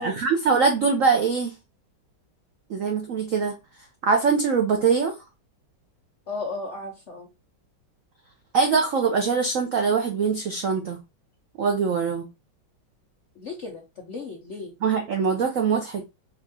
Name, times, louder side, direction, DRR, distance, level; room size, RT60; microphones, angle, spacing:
voice 1, 0.0-1.5 2.7-3.5 4.0-5.1 8.5-11.0 11.6-12.3 14.8-16.0, right 5 dB, 75° right, 0.7 m, -22 dB
voice 2, 6.3-7.3 13.4-14.7, left 3 dB, 60° left, 0.8 m, -35 dB
4.5 x 2.5 x 3.9 m
omnidirectional pair, 2.2 m